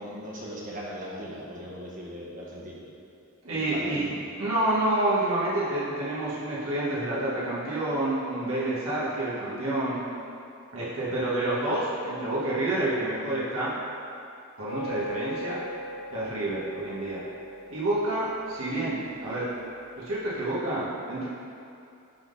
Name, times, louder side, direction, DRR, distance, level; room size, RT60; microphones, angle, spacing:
voice 1, 0.0-2.8 3.5-4.2 11.0-11.2, equal, 40° right, -5 dB, 1.4 m, -39 dB
voice 2, 3.4-4.0 4.4-10.0 10.7-13.8 14.6-15.6 16.1-17.2 17.7-19.5 20.0-21.3, right 1 dB, 85° right, -8 dB, 1.6 m, -28 dB
sound 1, 14.7-20.2, equal, 85° left, 0.5 m, -41 dB
10.5 x 3.8 x 4.1 m, 2.6 s
head